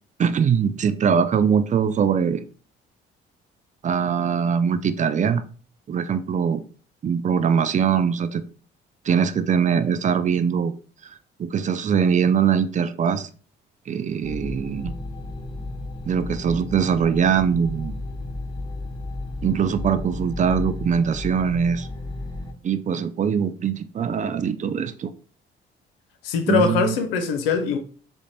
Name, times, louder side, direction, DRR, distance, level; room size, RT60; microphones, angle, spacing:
voice 1, 0.2-2.5 3.8-5.4 5.9-6.6 7.0-8.4 9.1-10.7 11.0-13.3 13.9-14.9 16.1-17.9 19.4-21.9 22.6-25.1 26.5-27.0, right 7 dB, 25° right, 0.3 m, -22 dB
sound 1, 14.2-22.5, left 2 dB, 15° left, 1.0 m, -33 dB
voice 2, 26.2-27.8, left 5 dB, 80° left, 0.5 m, -22 dB
3.7 x 2.1 x 3.1 m
figure-of-eight pair, 45°, 29 cm